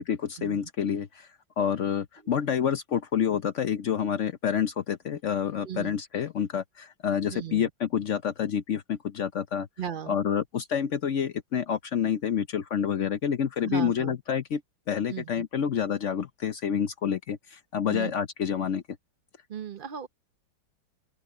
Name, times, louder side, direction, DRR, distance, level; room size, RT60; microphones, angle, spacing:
voice 1, 0.1-1.3 1.6-9.7 10.1-14.6 14.9-18.8, left 8 dB, 65° left, 0.7 m, -28 dB
voice 2, 5.6-6.0 7.3-7.7 9.8-10.2 13.6-14.2 15.1-15.5 17.9-18.1 19.5-20.1, right 9 dB, 80° right, 0.4 m, -36 dB
open air
omnidirectional pair, 2.1 m